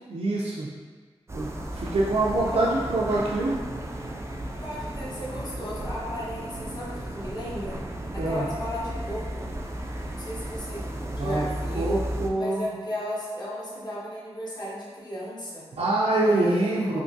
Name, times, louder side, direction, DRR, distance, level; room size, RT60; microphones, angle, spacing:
voice 1, 0.1-0.7 1.3-3.6 8.2-8.5 11.1-12.7 15.8-17.0, right 2 dB, 80° right, -7 dB, 0.5 m, -25 dB
sound 1, 1.3-12.3, right 1 dB, 25° right, 0.3 m, -34 dB
voice 2, 4.6-7.8 8.1-9.5 10.1-10.8 11.2-12.0 12.4-15.7 16.2-17.0, equal, 40° left, -7 dB, 1.1 m, -35 dB
3.5 x 2.8 x 2.7 m, 1.4 s
wide cardioid pair, 75°, 11 cm